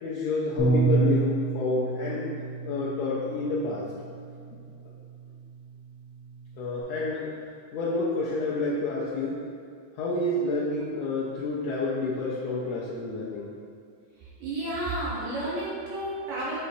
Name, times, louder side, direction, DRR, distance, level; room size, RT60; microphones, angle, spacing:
voice 1, 0.0-2.3 2.6-3.9 6.6-7.3 7.7-9.4 10.0-13.5, left 3 dB, 90° left, -7 dB, 1.5 m, -29 dB
Bass guitar, 0.6-6.8, right 5 dB, 65° left, 1.4 m, -30 dB
voice 2, 14.4-16.6, right 1 dB, 75° right, -7 dB, 2.0 m, -31 dB
6.6 x 3.0 x 2.6 m, 2.3 s
omnidirectional pair, 3.6 m